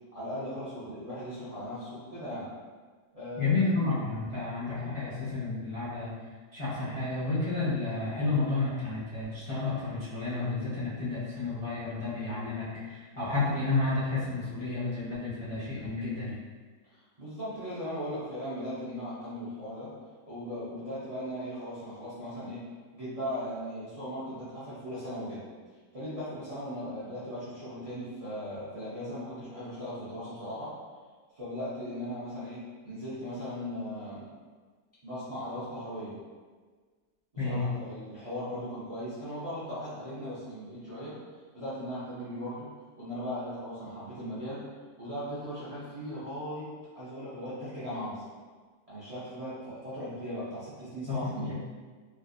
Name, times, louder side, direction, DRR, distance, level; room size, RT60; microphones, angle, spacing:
voice 1, 0.1-2.5 3.1-3.7 16.9-19.9 20.3-22.7 22.9-25.4 25.9-30.7 31.3-34.3 35.0-36.1 37.4-41.1 41.5-42.7 43.0-44.6 45.0-46.7 46.9-48.2 48.9-51.5, equal, 40° right, -11 dB, 0.5 m, -38 dB
voice 2, 3.4-6.1 6.5-16.4 37.4-37.7 51.1-51.6, left 3 dB, 30° left, -11 dB, 0.6 m, -31 dB
3.3 x 2.5 x 2.6 m, 1.5 s
omnidirectional pair, 1.8 m